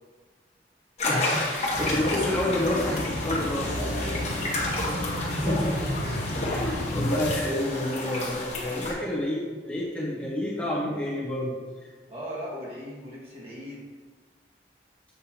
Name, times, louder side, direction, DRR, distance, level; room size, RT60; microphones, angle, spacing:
sound 1, 1.0-8.9, left 2 dB, 40° left, 1.2 m, -31 dB
voice 1, 1.0-3.8 5.4-5.9 6.3-11.9, left 1 dB, 10° left, -7 dB, 1.0 m, -29 dB
sound 2, 1.7-7.4, left 1 dB, 80° left, 0.7 m, -32 dB
sound 3, 3.1-6.2, right 1 dB, 70° right, 0.6 m, -38 dB
voice 2, 3.7-5.2 12.1-13.8, equal, 35° right, -5 dB, 1.5 m, -38 dB
6.8 x 5.3 x 2.9 m, 1.4 s
head